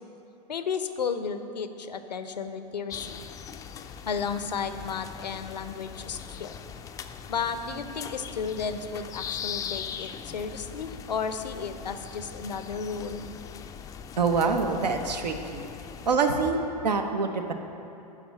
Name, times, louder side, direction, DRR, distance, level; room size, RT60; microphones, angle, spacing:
voice 1, 0.5-3.2 4.0-6.5 7.3-13.3, left 6 dB, 85° left, 9 dB, 0.6 m, -33 dB
sound 1, 2.9-16.2, left 7 dB, 15° left, 0.3 m, -40 dB
voice 2, 14.2-15.6 16.1-16.6 16.8-17.5, right 4 dB, 80° right, 6 dB, 0.9 m, -25 dB
11.0 x 3.6 x 7.4 m, 2.8 s
hypercardioid pair, 100°, 21 cm